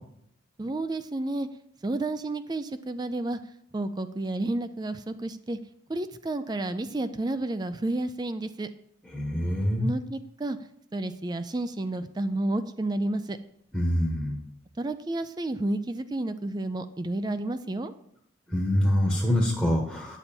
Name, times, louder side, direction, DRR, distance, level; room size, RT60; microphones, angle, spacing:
voice 1, 0.6-1.5 1.8-3.4 3.7-5.6 5.9-8.7 9.8-10.6 10.9-13.4 14.8-17.9, right 2 dB, 20° right, 11 dB, 0.4 m, -31 dB
voice 2, 9.1-9.9 13.7-14.4 18.5-20.2, equal, 5° right, -1 dB, 1.1 m, -25 dB
9.5 x 7.0 x 4.4 m, 0.72 s
head